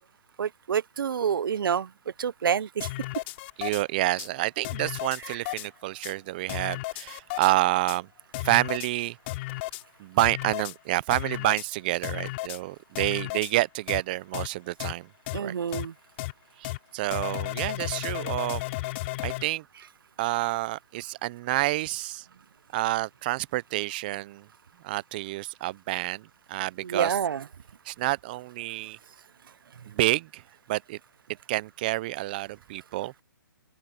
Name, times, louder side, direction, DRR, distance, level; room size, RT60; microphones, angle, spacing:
voice 1, 0.4-1.9 2.2-2.9 15.3-15.9 26.8-27.4, right 7 dB, 70° right, 0.6 m, -27 dB
sound 1, 2.8-3.8 4.2-4.3 4.6-5.7 6.0-6.1 6.5-7.5 7.9-8.0 8.3-8.9 9.3-9.8 10.2-10.8 11.1-11.7 12.0-12.6 13.0-13.5 13.9-14.0 14.3-14.5 14.8-14.9 15.3-15.4 15.7-15.9 16.2-16.3 16.6-16.8 17.1-19.4, left 20 dB, 30° left, 3.8 m, -34 dB
voice 2, 3.6-8.1 8.4-9.2 10.0-15.1 15.4-15.5 16.6-18.6 19.2-19.6 20.2-22.2 22.7-24.5 24.8-27.2 27.9-29.0 29.9-30.4 30.7-31.0 31.5-33.2, right 18 dB, 25° right, 0.5 m, -28 dB
open air
hypercardioid pair, 160°, 12 cm